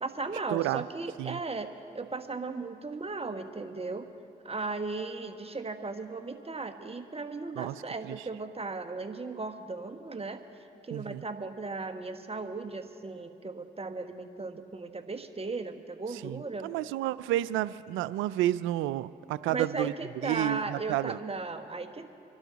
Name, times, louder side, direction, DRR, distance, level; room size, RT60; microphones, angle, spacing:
voice 1, 0.0-4.1 4.4-10.4 10.8-16.7 19.5-22.1, right 3 dB, 30° right, 7 dB, 1.6 m, -36 dB
voice 2, 0.5-0.8 1.2-1.4 7.6-8.2 10.9-11.2 16.1-19.9 20.2-21.2, right 14 dB, 90° right, 17 dB, 0.4 m, -31 dB
25.5 x 12.0 x 4.0 m, 2.4 s
supercardioid pair, 45°, 20 cm